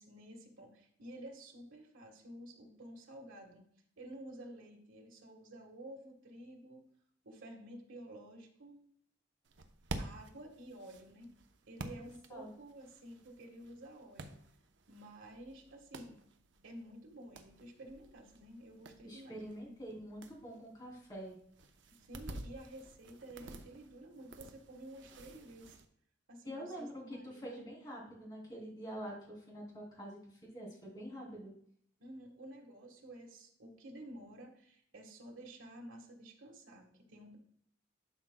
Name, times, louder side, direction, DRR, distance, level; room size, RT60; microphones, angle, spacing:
voice 1, 0.0-3.6 4.0-6.8 7.2-8.8 10.0-11.3 11.7-14.4 14.9-16.2 16.6-19.7 21.9-25.8 26.3-27.6 32.0-37.4, right 1 dB, 90° right, 1 dB, 1.4 m, -51 dB
sound 1, 9.4-25.9, right 2 dB, 65° right, 0.7 m, -51 dB
voice 2, 19.0-21.4 26.4-31.5, equal, 20° left, -3 dB, 3.0 m, -46 dB
11.5 x 6.0 x 2.2 m, 0.66 s
head